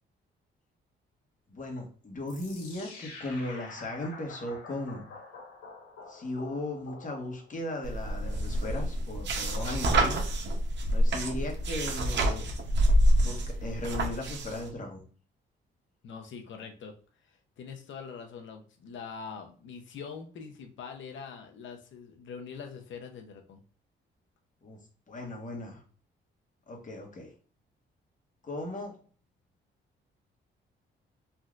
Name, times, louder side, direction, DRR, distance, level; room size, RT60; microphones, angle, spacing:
voice 1, 1.5-5.0 6.1-10.2 10.9-12.5 13.2-15.0 24.6-24.8 25.1-25.8 26.7-27.3 28.4-28.9, left 1 dB, 40° left, 2 dB, 1.1 m, -37 dB
sound 1, 2.3-7.6, left 3 dB, 90° left, 1.1 m, -47 dB
sound 2, 7.8-14.6, right 1 dB, 60° right, 0.7 m, -27 dB
voice 2, 16.0-16.9 17.2-23.6, left 6 dB, 65° left, 4 dB, 0.7 m, -43 dB
3.3 x 2.6 x 2.4 m, 0.41 s
cardioid pair, 80°, 21 cm